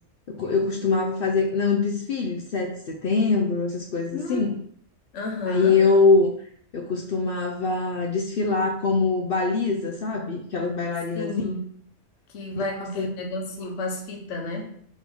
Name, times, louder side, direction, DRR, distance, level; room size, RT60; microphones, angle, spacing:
voice 1, 0.3-4.5 5.4-6.3 6.7-11.4 13.0-13.1, left 4 dB, 75° left, 0 dB, 0.5 m, -23 dB
voice 2, 4.1-4.5 5.1-5.8 11.1-11.7 12.3-14.8, left 1 dB, 60° left, 1 dB, 1.1 m, -31 dB
3.7 x 3.1 x 3.4 m, 0.62 s
omnidirectional pair, 1.6 m